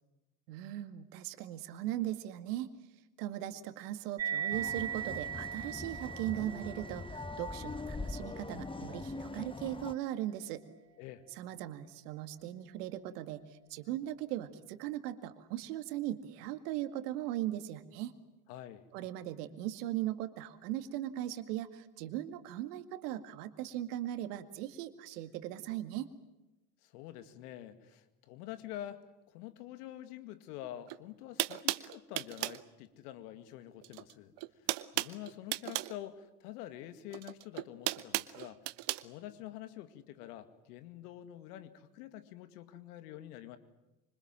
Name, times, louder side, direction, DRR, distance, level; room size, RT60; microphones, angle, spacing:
voice 1, 0.5-2.7 3.2-10.6 11.3-18.2 18.9-26.1, right 13 dB, 75° right, 10 dB, 2.2 m, -39 dB
sound 1, 4.2-11.1, right 8 dB, 30° right, 2.2 m, -41 dB
sound 2, 4.5-9.9, left 3 dB, 10° left, 1.0 m, -42 dB
voice 2, 18.5-18.9 26.8-38.6 39.0-43.6, left 13 dB, 75° left, 11 dB, 2.3 m, -47 dB
sound 3, 30.9-31.0 31.4-32.6 33.8-34.1 34.4-35.9 37.1-39.0, right 19 dB, 60° right, 1.2 m, -35 dB
26.0 x 25.0 x 7.6 m, 1.0 s
hypercardioid pair, 65°, 47 cm